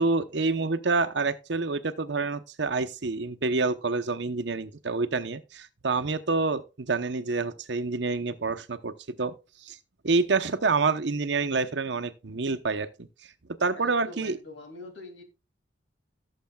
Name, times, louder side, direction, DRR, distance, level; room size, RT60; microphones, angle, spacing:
voice 1, 0.0-9.4 9.6-9.8 10.0-13.1 13.6-14.4, right 3 dB, 65° right, 0.8 m, -27 dB
voice 2, 13.7-15.2, left 3 dB, 75° left, 2.5 m, -44 dB
17.5 x 7.5 x 2.3 m
head